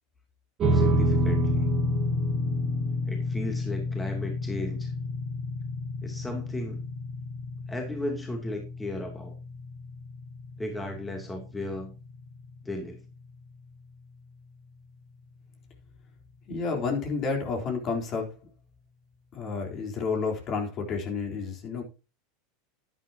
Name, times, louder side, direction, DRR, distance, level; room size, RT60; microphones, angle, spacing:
sound 1, 0.6-13.1, left 1 dB, 35° right, 3.0 m, -30 dB
voice 1, 0.7-1.7 3.1-4.9 6.0-6.8 7.7-9.3 10.6-11.9 12.6-13.0, left 1 dB, 10° left, 2 dB, 2.9 m, -35 dB
voice 2, 16.5-18.3 19.3-21.8, left 4 dB, 40° left, 2 dB, 3.9 m, -30 dB
11.0 x 10.5 x 2.9 m, 0.29 s
hypercardioid pair, 100°, 0 cm